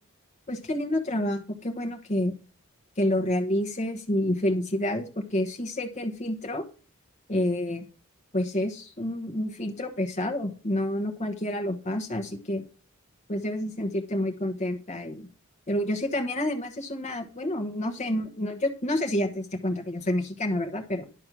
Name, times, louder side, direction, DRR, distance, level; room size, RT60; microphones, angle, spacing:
voice 1, 0.5-2.3 3.0-6.6 7.3-7.8 8.3-12.6 13.3-15.3 15.7-21.0, left 1 dB, 35° left, 2 dB, 1.1 m, -28 dB
11.5 x 5.4 x 6.1 m, 0.37 s
head